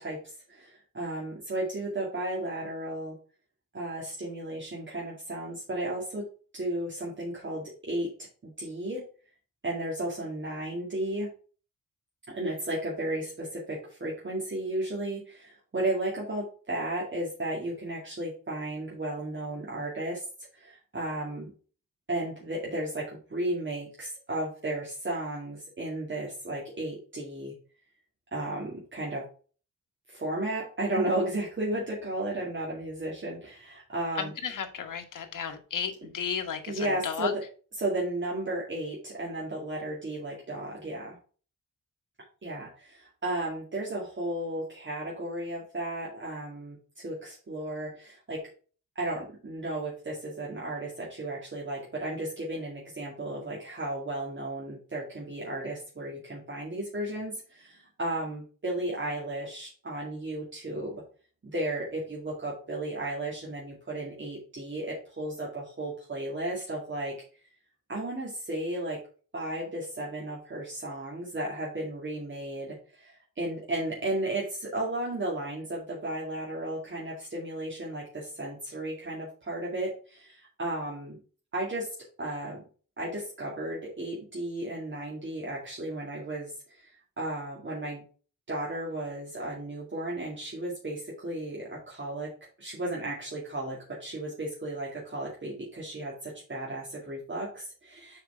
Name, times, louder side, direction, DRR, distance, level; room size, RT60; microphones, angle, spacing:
voice 1, 0.0-3.1 3.7-6.2 6.5-8.1 8.4-9.0 9.6-11.3 12.3-20.2 20.5-21.5 22.1-27.5 28.3-29.2 30.1-34.3 36.7-37.4 37.8-41.2 42.4-48.4 49.0-61.0 61.4-67.1 67.9-69.0 69.3-81.2 81.5-81.9 82.2-82.6 83.0-88.0 88.5-92.3 92.6-98.2, right 1 dB, 35° right, -5 dB, 2.4 m, -34 dB
voice 2, 34.1-37.3, left 7 dB, 70° left, 5 dB, 1.5 m, -34 dB
6.8 x 5.0 x 4.4 m, 0.40 s
wide cardioid pair, 105°, 33 cm